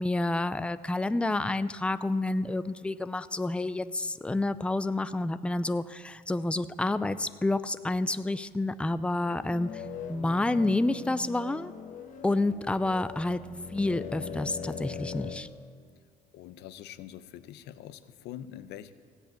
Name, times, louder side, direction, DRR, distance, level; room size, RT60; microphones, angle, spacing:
voice 1, 0.0-9.8 10.1-11.7 12.2-13.4 13.7-15.5, left 2 dB, 5° left, 13 dB, 0.5 m, -29 dB
sound 1, 9.2-15.4, left 6 dB, 50° left, 1.4 m, -41 dB
voice 2, 16.3-18.9, left 11 dB, 85° left, 13 dB, 0.8 m, -44 dB
16.0 x 7.9 x 8.8 m, 2.1 s
cardioid pair, 110°, 17 cm